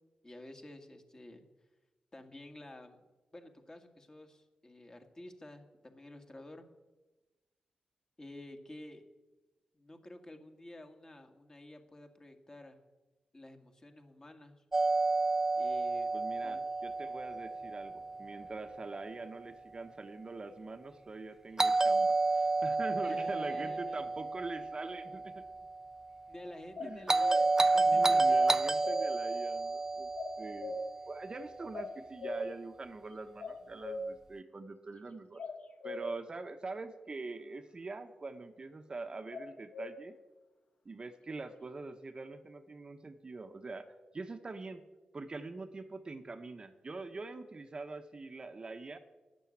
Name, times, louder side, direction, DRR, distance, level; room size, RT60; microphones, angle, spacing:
voice 1, 0.2-1.4 2.1-3.0 3.3-6.7 8.2-9.0 9.7-12.8 13.3-14.6 15.6-16.1 16.4-16.7 23.0-24.0 26.3-28.6, left 1 dB, 25° left, 5 dB, 1.9 m, -51 dB
Doorbell, 14.7-18.7 21.6-25.8 27.1-31.5, right 3 dB, 20° right, 0.3 m, -30 dB
voice 2, 16.1-25.4 26.8-27.1 27.8-30.1 30.4-35.4 35.8-40.2 40.8-44.8 45.1-49.0, right 3 dB, 35° right, 7 dB, 1.0 m, -44 dB
sound 1, 26.8-27.4 28.4-29.0 30.1-30.9 31.7-32.5 33.4-34.1 35.4-36.0 39.3-39.9, left 2 dB, 60° left, 1.3 m, -40 dB
12.0 x 10.5 x 8.6 m, 1.2 s
wide cardioid pair, 95°, 3 cm